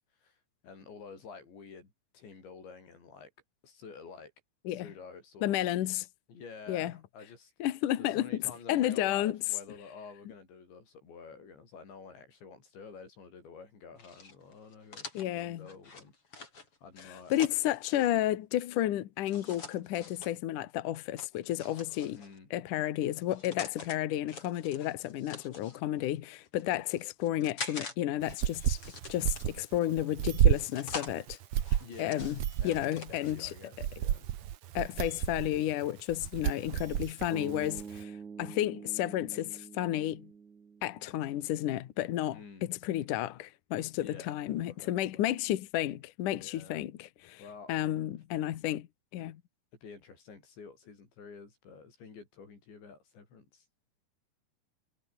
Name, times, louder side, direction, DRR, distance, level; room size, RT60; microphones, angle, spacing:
voice 1, 0.6-3.3 3.6-4.3 4.7-5.6 6.3-7.5 8.0-16.5 16.8-17.4 22.1-22.5 31.8-32.3 32.6-34.3 42.3-42.7 44.0-44.4 44.7-45.3 46.4-46.8 47.4-47.7 49.8-53.7, left 5 dB, 90° left, 9.0 m, -50 dB
voice 2, 5.4-6.0 6.7-6.9 7.6-9.4 15.1-15.7 17.3-22.2 22.5-28.8 29.1-31.4 32.0-32.4 32.6-33.5 34.7-38.1 38.4-40.3 40.8-47.4 47.7-48.9 49.1-49.4, left 13 dB, 65° left, 2.3 m, -32 dB
sound 1, 14.0-18.1 19.2-20.3 21.2-22.4 23.1-24.0 24.3-25.8 26.4-27.9 28.2-29.8 30.4-31.1 31.6-33.3, left 4 dB, 30° left, 5.4 m, -45 dB
sound 2, 28.2-38.0, right 11 dB, 70° right, 1.7 m, -31 dB
sound 3, 37.3-41.5, right 6 dB, 45° right, 4.9 m, -46 dB
omnidirectional pair, 5.0 m